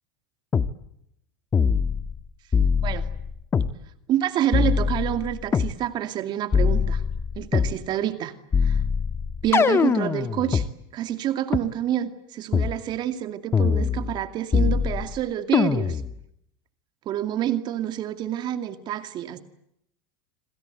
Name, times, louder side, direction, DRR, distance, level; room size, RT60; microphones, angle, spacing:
sound 1, 0.5-0.7 1.5-2.2 2.5-3.7 4.5-5.7 6.5-7.8 8.5-10.7 11.5-11.6 12.5-12.8 13.5-14.2 14.5-15.2 15.5-16.2, left 6 dB, 20° left, 1.3 m, -22 dB
voice 1, 4.1-7.0 7.4-8.3 8.6-8.8 9.4-10.7 10.9-16.0 17.1-19.4, right 11 dB, 40° right, 9 dB, 2.4 m, -28 dB
27.0 x 26.5 x 8.1 m, 0.76 s
supercardioid pair, 120°, 11 cm